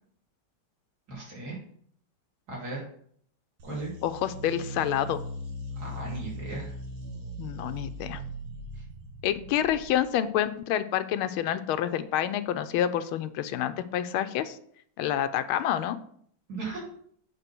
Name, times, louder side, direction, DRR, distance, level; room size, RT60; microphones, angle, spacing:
voice 1, 1.1-1.6 2.5-2.9 3.6-3.9 5.7-6.7 8.7-8.8 16.5-16.8, right 2 dB, 50° right, -4 dB, 3.3 m, -36 dB
sound 1, 3.6-10.1, equal, 75° right, 2.1 m, -39 dB
voice 2, 4.0-5.2 7.4-8.2 9.2-14.6 15.0-16.0, left 11 dB, 85° left, 12 dB, 1.4 m, -28 dB
8.1 x 4.1 x 5.9 m, 0.63 s
omnidirectional pair, 2.3 m